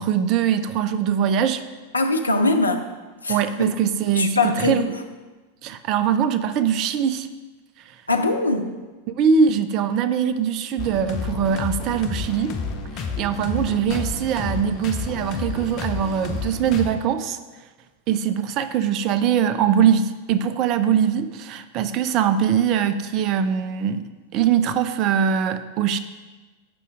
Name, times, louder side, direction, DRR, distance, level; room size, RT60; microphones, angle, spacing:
voice 1, 0.0-1.6 3.3-4.9 5.6-7.3 9.1-12.5 12.9-17.4 18.1-26.0, right 8 dB, 40° right, 10 dB, 0.4 m, -22 dB
voice 2, 1.9-2.9 3.2-3.7 4.2-4.8 8.1-8.7, left 2 dB, 80° left, 6 dB, 0.5 m, -22 dB
sound 1, 10.8-16.9, left 4 dB, 35° left, 0.7 m, -30 dB
7.6 x 5.5 x 3.6 m, 1.3 s
figure-of-eight pair, 90°, 0 cm